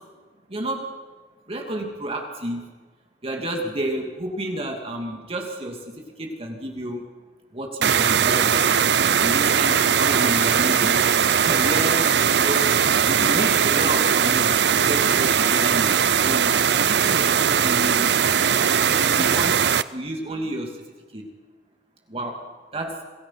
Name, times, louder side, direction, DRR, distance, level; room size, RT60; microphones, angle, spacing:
voice 1, 0.5-0.9 1.5-2.6 3.2-7.0 7.5-8.6 9.2-11.0 11.4-12.1 12.4-12.6 13.0-18.1 18.5-19.7 19.9-20.8 21.1-21.3 22.1-22.4 22.7-23.0, right 1 dB, 35° right, 1 dB, 2.7 m, -30 dB
sound 1, 7.8-19.8, right 7 dB, 70° right, 0.6 m, -19 dB
27.0 x 18.5 x 6.0 m, 1.3 s
head